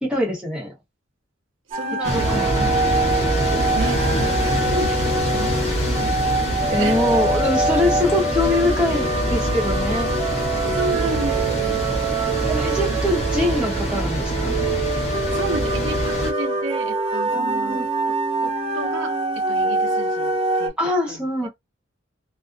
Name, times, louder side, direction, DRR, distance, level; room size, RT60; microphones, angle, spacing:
voice 1, 0.0-0.7 2.1-2.7 6.7-10.1 12.5-14.6 17.3-17.9 20.8-21.5, left 1 dB, 5° right, 0.9 m, -24 dB
sound 1, 1.7-20.7, right 2 dB, 30° right, 0.6 m, -24 dB
voice 2, 1.7-7.0 10.7-12.2 12.9-13.0 15.3-18.2 18.4-21.5, right 3 dB, 70° right, 0.6 m, -33 dB
sound 2, 2.0-16.3, equal, 30° left, 0.9 m, -25 dB
2.4 x 2.1 x 2.4 m
head